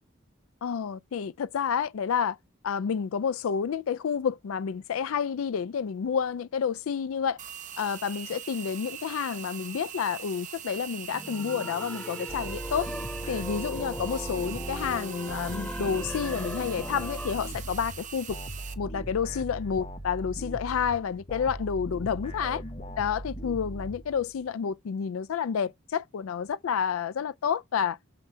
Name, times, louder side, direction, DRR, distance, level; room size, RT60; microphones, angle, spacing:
voice 1, 0.6-2.4 2.6-7.4 7.8-12.9 13.3-18.4 18.8-22.6 23.0-28.0, left 7 dB, 75° left, 0.4 m, -29 dB
sound 1, 7.4-18.7, right 9 dB, 40° right, 0.8 m, -42 dB
sound 2, 11.1-17.3, equal, 5° left, 0.5 m, -39 dB
sound 3, 12.3-24.5, right 1 dB, 30° left, 0.9 m, -39 dB
7.5 x 3.3 x 5.5 m
head